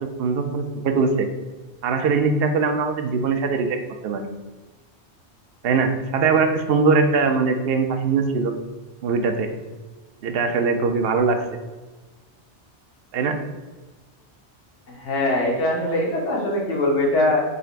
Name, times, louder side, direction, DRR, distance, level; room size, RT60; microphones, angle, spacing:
voice 1, 0.2-1.3 1.8-3.8 4.0-4.3 5.6-8.5 9.0-9.5 10.2-11.4 13.1-13.4, right 4 dB, 65° right, 6 dB, 0.7 m, -21 dB
voice 2, 15.0-17.4, left 1 dB, 90° left, -3 dB, 1.3 m, -22 dB
5.1 x 3.2 x 2.4 m, 1.2 s
omnidirectional pair, 1.2 m